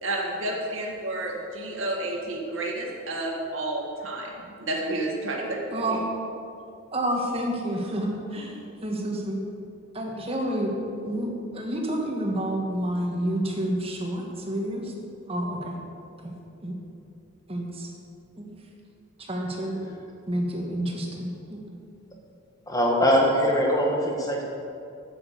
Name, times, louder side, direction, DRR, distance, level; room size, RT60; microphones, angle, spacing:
voice 1, 0.0-4.3 4.6-5.6, right 2 dB, 70° right, 0 dB, 1.9 m, -30 dB
voice 2, 5.7-6.0 6.9-9.4 9.9-10.7 11.0-14.9 15.3-15.8 16.2-16.3 16.6-16.7 17.5-17.9 18.4-18.5 19.2-19.8 20.3-21.6, right 1 dB, 25° right, 0 dB, 1.6 m, -29 dB
voice 3, 22.7-24.4, equal, 15° left, -1 dB, 1.6 m, -22 dB
9.8 x 8.6 x 6.7 m, 2.5 s
head